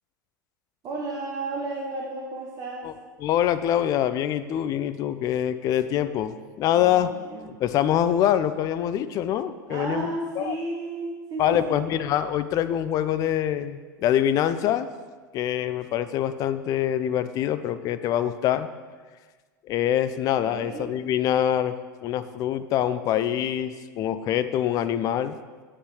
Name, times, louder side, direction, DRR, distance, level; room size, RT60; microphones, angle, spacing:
voice 1, 0.8-2.9 6.7-7.5 9.7-11.8 20.4-20.9, right 2 dB, 35° right, -2 dB, 1.0 m, -33 dB
voice 2, 3.2-7.1 7.4-10.5 11.4-14.9 15.3-18.7 19.7-21.7 22.0-25.4, left 11 dB, 35° left, 13 dB, 0.4 m, -25 dB
7.9 x 7.6 x 3.1 m, 1.4 s
figure-of-eight pair, 85°, 11 cm